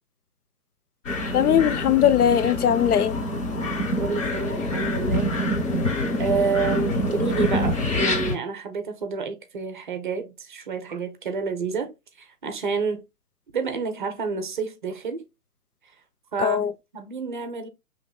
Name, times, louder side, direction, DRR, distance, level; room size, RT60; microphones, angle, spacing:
sound 1, 1.0-8.3, left 1 dB, 55° left, 1.8 m, -26 dB
voice 1, 1.3-3.2 16.4-16.7, left 10 dB, 70° left, 0.5 m, -20 dB
voice 2, 4.0-5.4 6.2-13.1 13.5-15.2 16.3-17.7, right 5 dB, 30° right, 0.6 m, -29 dB
6.0 x 3.1 x 2.2 m
figure-of-eight pair, 130°, 47 cm